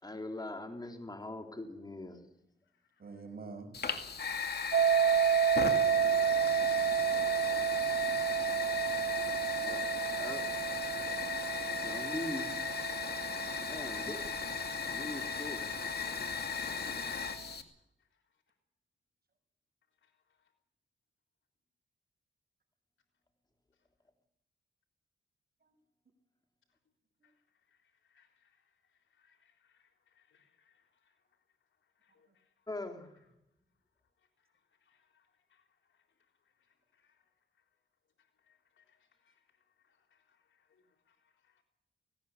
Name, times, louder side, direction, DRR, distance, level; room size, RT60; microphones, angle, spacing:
voice 1, 0.0-2.3 9.6-9.9 10.2-10.5 11.8-12.6 13.7-14.2 14.9-15.7 32.7-33.3, left 2 dB, 20° left, 3.7 m, -41 dB
voice 2, 3.0-3.7 5.4-5.6 7.1-7.9 13.6-13.7 25.6-25.7 27.2-27.3, right 4 dB, 50° right, 6.1 m, -49 dB
Fire, 3.7-17.6, left 6 dB, 55° left, 2.4 m, -37 dB
sound 1, 4.7-15.6, right 8 dB, 65° right, 1.3 m, -31 dB
voice 3, 27.7-31.2 32.0-32.5 34.4-34.5 34.8-36.0 36.6-37.2 38.2-39.4 39.8-41.6, left 7 dB, 75° left, 3.8 m, -73 dB
18.5 x 17.0 x 8.6 m
cardioid pair, 60°, 20 cm